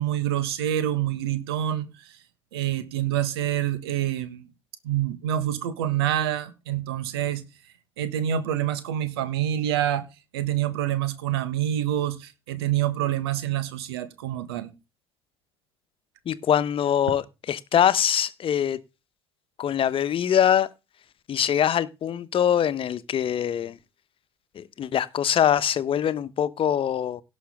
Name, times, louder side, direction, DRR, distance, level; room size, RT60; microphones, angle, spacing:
voice 1, 0.0-1.9 2.5-4.5 4.8-7.4 8.0-10.0 10.3-14.7, right 11 dB, 75° right, 1.5 m, -26 dB
voice 2, 16.3-18.8 19.6-20.7 21.3-23.8 24.5-27.2, left 9 dB, 45° left, 1.1 m, -23 dB
17.5 x 6.2 x 3.6 m
figure-of-eight pair, 55°, 13 cm